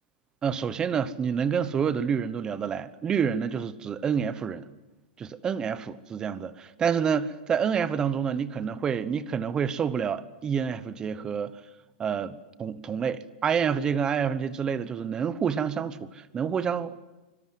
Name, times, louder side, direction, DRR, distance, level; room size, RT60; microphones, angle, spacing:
voice 1, 0.4-4.7 5.2-11.6 12.0-17.0, right 7 dB, 15° right, 16 dB, 1.0 m, -28 dB
25.0 x 24.5 x 7.7 m, 1.1 s
supercardioid pair, 165°, 5 cm